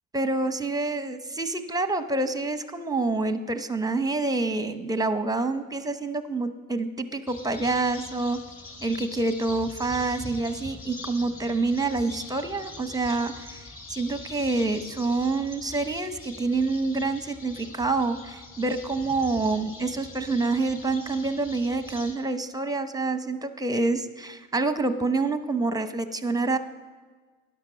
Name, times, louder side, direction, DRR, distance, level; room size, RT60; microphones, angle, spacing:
voice 1, 0.1-8.4 8.8-26.6, right 3 dB, 10° right, 10 dB, 0.8 m, -27 dB
sound 1, 7.3-22.2, left 3 dB, 30° left, 3.5 m, -43 dB
12.0 x 9.8 x 6.3 m, 1.4 s
supercardioid pair, 85°, 43 cm